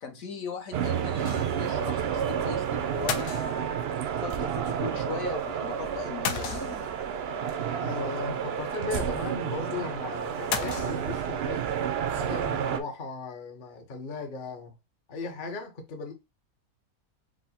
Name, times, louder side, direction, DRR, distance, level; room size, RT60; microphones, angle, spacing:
voice 1, 0.0-3.7 4.2-7.0, left 5 dB, 65° left, 1.2 m, -38 dB
sound 1, 0.7-12.8, right 8 dB, 85° right, 0.5 m, -30 dB
sound 2, 1.2-1.7 2.0-2.1 3.1-4.0 6.3-7.1 10.5-11.4, left 8 dB, 90° left, 1.2 m, -34 dB
voice 2, 7.8-11.6 12.2-14.8 15.1-16.1, left 4 dB, 45° left, 0.6 m, -36 dB
4.7 x 2.1 x 4.1 m
omnidirectional pair, 1.7 m